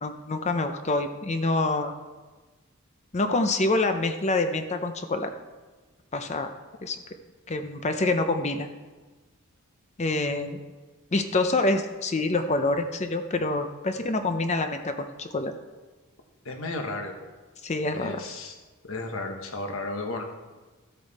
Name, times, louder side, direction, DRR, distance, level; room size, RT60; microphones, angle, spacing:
voice 1, 0.0-1.9 3.1-5.3 6.1-6.5 6.8-7.0 7.5-8.7 10.0-10.6 11.1-15.5 17.6-18.2, left 2 dB, 30° left, 7 dB, 0.6 m, -26 dB
voice 2, 16.4-17.2 18.0-18.6 18.8-20.2, left 2 dB, 65° left, 4 dB, 1.3 m, -33 dB
13.0 x 8.3 x 4.2 m, 1.3 s
head